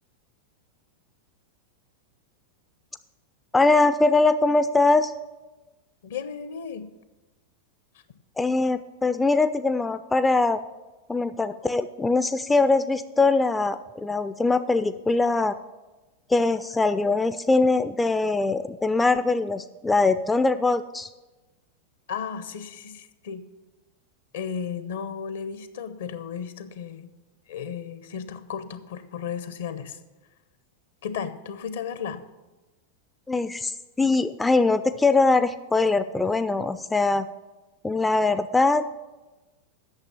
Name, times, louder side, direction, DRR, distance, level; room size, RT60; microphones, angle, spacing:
voice 1, 3.5-5.1 8.4-10.6 11.1-15.5 16.3-21.1 33.3-37.3 37.8-38.8, left 3 dB, 10° left, 12 dB, 0.3 m, -22 dB
voice 2, 6.0-6.9 22.1-23.4 24.3-27.1 27.5-30.0 31.0-32.2, left 7 dB, 60° left, 12 dB, 0.7 m, -34 dB
8.9 x 6.5 x 7.0 m, 1.1 s
figure-of-eight pair, 90°, 0 cm